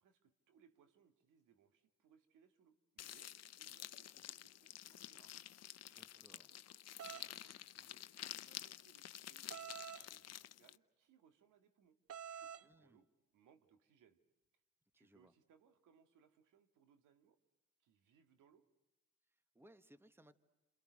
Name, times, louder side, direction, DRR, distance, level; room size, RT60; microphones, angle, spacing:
voice 1, 0.0-5.4 5.8-6.6 7.1-8.1 8.5-12.0 12.2-13.1 13.3-14.2 15.0-17.4 17.8-18.7, right 7 dB, 85° right, 7 dB, 2.1 m, -71 dB
sound 1, 3.0-10.8, left 11 dB, 55° left, 0.8 m, -51 dB
voice 2, 5.9-6.5 12.6-13.0 14.9-15.3 19.3-20.3, right 1 dB, 10° right, 11 dB, 1.5 m, -66 dB
sound 2, 7.0-7.3 9.5-10.1 12.1-12.7, right 8 dB, 50° right, 0.8 m, -48 dB
29.5 x 27.0 x 6.5 m, 1.0 s
cardioid pair, 90°, 30 cm